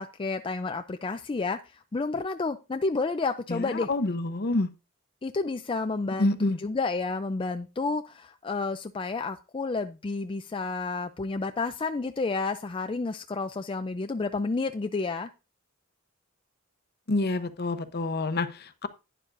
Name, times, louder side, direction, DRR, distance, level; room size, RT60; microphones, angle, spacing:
voice 1, 0.0-3.9 5.2-15.3, left 3 dB, 25° left, 7 dB, 0.4 m, -30 dB
voice 2, 3.5-4.7 6.2-6.6 17.1-18.9, left 2 dB, 50° left, 10 dB, 0.8 m, -28 dB
11.0 x 10.0 x 2.6 m, 0.29 s
head